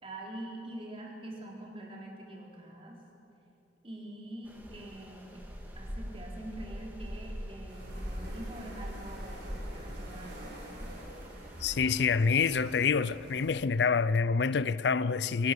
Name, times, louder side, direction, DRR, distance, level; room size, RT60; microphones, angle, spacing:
voice 1, 0.0-3.0 3.8-5.4 5.7-10.9, right 1 dB, 30° right, 3.8 m, -45 dB
sound 1, 4.4-11.9, equal, 10° right, 2.6 m, -42 dB
sound 2, 7.7-13.5, right 1 dB, 70° right, 5.5 m, -48 dB
voice 2, 11.6-15.5, left 5 dB, 65° left, 0.5 m, -27 dB
25.0 x 17.5 x 6.8 m
head